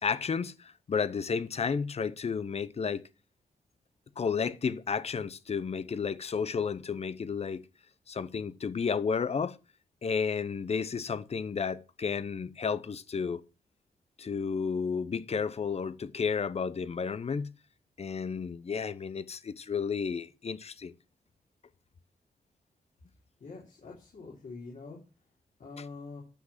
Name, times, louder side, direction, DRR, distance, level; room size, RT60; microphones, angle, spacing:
voice 1, 0.0-0.5 0.9-3.0 4.2-7.6 8.1-9.6 10.0-13.4 14.2-17.5 18.0-20.9, left 6 dB, 45° left, 0.8 m, -32 dB
voice 2, 23.4-25.0 25.6-26.2, left 4 dB, 60° left, 3.8 m, -45 dB
10.5 x 6.0 x 5.8 m
cardioid pair, 75°, 15 cm